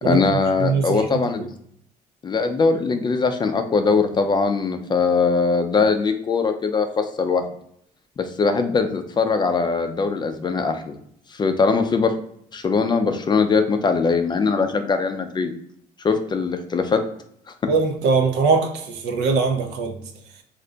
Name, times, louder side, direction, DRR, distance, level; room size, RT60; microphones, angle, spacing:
voice 1, 0.0-1.5 2.2-7.4 8.2-10.9 11.3-12.1 12.5-15.5 16.0-17.0 17.6-17.7, left 4 dB, 25° left, 0.4 m, -21 dB
voice 2, 0.6-1.1 1.4-1.5 17.7-20.0, right 4 dB, 80° right, 0.5 m, -21 dB
2.5 x 2.2 x 3.8 m
cardioid pair, 110°, 17 cm